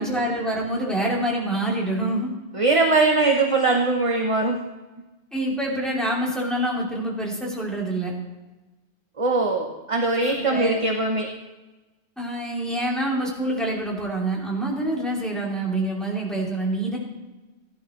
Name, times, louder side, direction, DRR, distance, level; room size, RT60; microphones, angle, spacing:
voice 1, 0.0-2.3 5.3-8.1 10.3-10.8 12.2-17.0, right 1 dB, ahead, -5 dB, 2.9 m, -26 dB
voice 2, 2.5-4.6 9.2-11.3, right 3 dB, 30° right, 2 dB, 0.8 m, -21 dB
15.5 x 11.5 x 3.1 m, 1.2 s
omnidirectional pair, 1.2 m